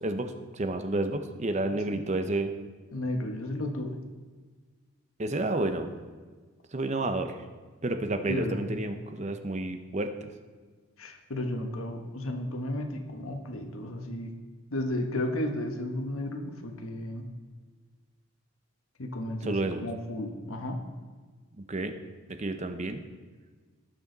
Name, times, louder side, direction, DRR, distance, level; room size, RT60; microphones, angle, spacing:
voice 1, 0.0-2.5 5.2-5.9 6.7-7.4 7.8-10.3 19.4-19.8 21.6-21.9 22.4-23.0, right 2 dB, 30° right, 7 dB, 0.7 m, -30 dB
voice 2, 2.9-4.0 8.3-8.7 11.0-14.3 14.7-17.2 19.0-20.8, left 1 dB, 80° left, 4 dB, 1.3 m, -33 dB
18.5 x 6.4 x 4.0 m, 1.4 s
head